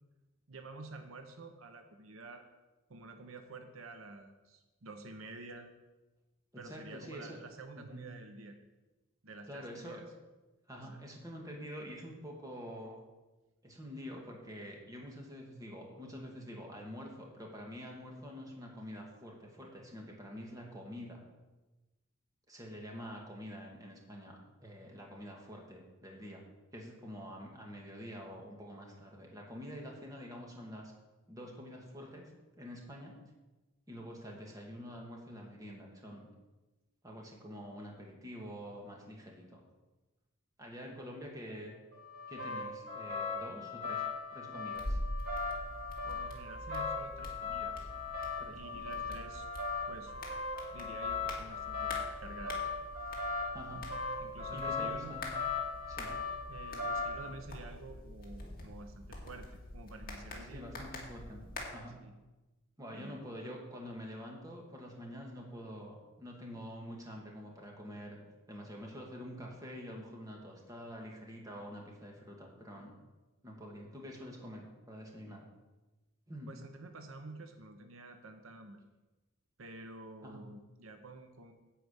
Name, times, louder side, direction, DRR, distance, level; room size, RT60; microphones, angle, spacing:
voice 1, 0.5-2.4 2.9-5.7 6.6-8.6 9.2-10.1 10.7-11.0 46.0-47.9 48.5-49.4 49.9-50.1 50.7-52.6 54.2-55.2 56.3-60.6 62.0-62.1 62.9-63.2 76.5-78.8 79.6-81.5, right 2 dB, 75° right, 6 dB, 0.9 m, -49 dB
voice 2, 6.5-7.4 7.8-8.1 9.5-10.0 10.7-13.0 13.6-21.2 22.5-26.4 26.7-30.9 31.3-32.3 32.6-33.1 33.9-36.3 37.0-39.6 40.6-41.8 42.3-44.0 44.3-45.0 48.4-49.0 53.5-53.8 54.5-55.3 55.9-56.1 60.4-62.0 62.8-68.2 68.5-72.9 73.4-75.5 76.3-76.5 80.2-80.4, equal, 15° right, -1 dB, 1.8 m, -47 dB
sound 1, 41.9-57.3, left 4 dB, 50° right, 2.4 m, -38 dB
sound 2, 44.7-61.6, left 1 dB, 45° left, 2.0 m, -45 dB
10.5 x 4.9 x 8.1 m, 1.1 s
head